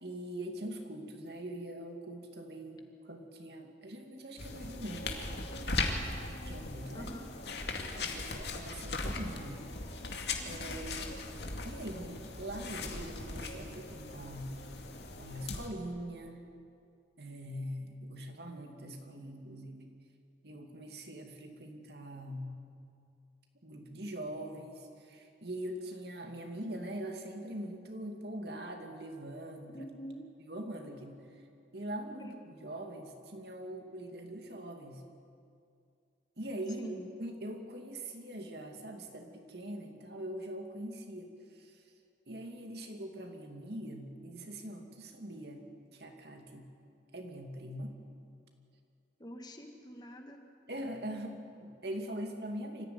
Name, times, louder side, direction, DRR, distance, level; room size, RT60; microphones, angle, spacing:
voice 1, 0.0-5.2 6.4-7.1 7.9-9.6 10.0-10.1 10.4-11.2 11.6-14.6 15.2-16.4 17.2-19.9 20.4-22.6 23.6-29.8 30.5-31.2 31.7-35.0 36.4-41.3 42.3-45.6 45.9-46.7 47.1-48.0 50.7-52.9, right 1 dB, 65° right, 3 dB, 2.5 m, -42 dB
sound 1, 4.4-15.7, left 3 dB, 70° left, 2.4 m, -39 dB
voice 2, 6.9-7.3 29.7-30.3 32.2-32.3 36.8-37.1 49.2-50.4, equal, 25° left, 4 dB, 1.8 m, -46 dB
25.0 x 15.0 x 9.7 m, 2.4 s
head